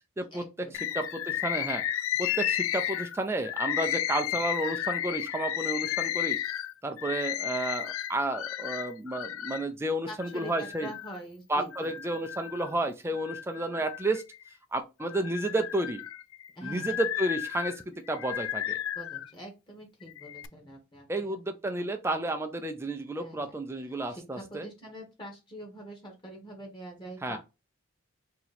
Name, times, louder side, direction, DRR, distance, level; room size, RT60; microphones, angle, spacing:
voice 1, 0.3-0.9 10.1-11.9 16.5-16.9 18.9-21.4 21.8-21.9 23.2-23.6 24.1-27.4, equal, 20° left, 1.1 m, -44 dB
Bird, 0.7-9.7 10.2-11.2 11.7-12.7 13.2-14.5 15.0-19.3 20.0-20.5, left 12 dB, 70° left, 0.3 m, -33 dB
voice 2, 0.9-1.8 2.2-6.4 6.8-10.9 11.5-14.2 14.7-16.0 16.6-18.8 21.1-24.7 27.2-27.4, right 2 dB, 10° right, 0.4 m, -31 dB
2.9 x 2.8 x 4.0 m
head